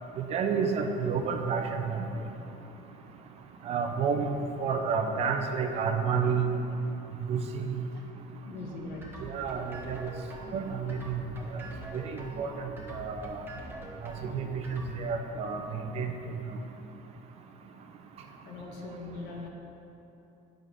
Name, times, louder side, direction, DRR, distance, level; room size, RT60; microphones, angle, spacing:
voice 1, 0.2-2.0 3.6-6.5 7.2-7.8 9.2-10.1 10.5-11.2 11.9-13.4 14.0-16.1, right 5 dB, 40° right, 5 dB, 0.6 m, -30 dB
voice 2, 8.4-9.2 18.4-19.5, left 3 dB, 80° left, 0 dB, 1.4 m, -41 dB
sound 1, 8.6-14.8, right 2 dB, 15° right, 1.1 m, -44 dB
9.1 x 5.1 x 6.2 m, 3.0 s
cardioid pair, 165°, 16 cm